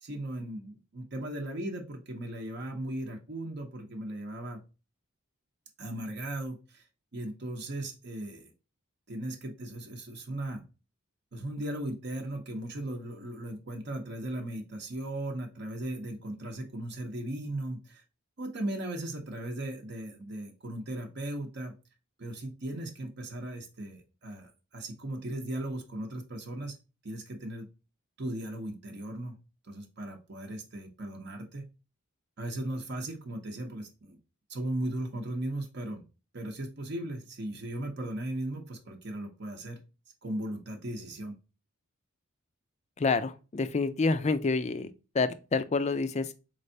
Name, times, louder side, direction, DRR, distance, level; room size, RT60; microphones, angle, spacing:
voice 1, 0.0-4.6 5.8-6.9 7.1-8.5 9.1-10.6 11.3-18.0 18.4-21.7 22.2-26.8 27.0-27.7 28.2-29.3 29.6-31.6 32.4-34.2 34.5-36.0 36.3-39.8 40.2-41.3, right 1 dB, 50° right, 0.7 m, -37 dB
voice 2, 43.0-46.3, left 4 dB, 30° left, 0.4 m, -28 dB
4.3 x 3.2 x 2.7 m
head